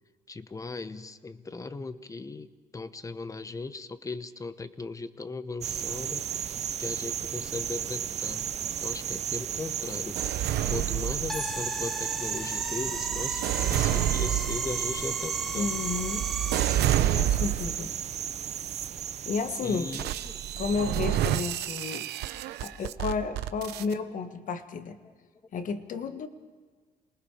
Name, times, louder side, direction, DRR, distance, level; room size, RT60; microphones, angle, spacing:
voice 1, 0.3-6.5 6.8-8.5 8.8-10.2 10.7-15.8 19.6-20.4 21.3-21.7 23.6-23.9, left 3 dB, 20° left, 13 dB, 1.0 m, -38 dB
sound 1, 5.6-21.4, right 9 dB, 40° right, 0.6 m, -34 dB
sound 2, 10.2-11.7 12.4-17.9 18.5-18.9 19.9-23.9, right 12 dB, 75° right, 0.8 m, -29 dB
sound 3, 11.3-16.8, equal, ahead, 0.6 m, -37 dB
voice 2, 15.6-16.3 17.1-17.9 19.2-19.9 20.6-22.1 22.6-25.0 25.5-26.3, left 5 dB, 50° left, 9 dB, 1.5 m, -32 dB
28.0 x 19.5 x 5.0 m, 1.5 s
cardioid pair, 110°, 17 cm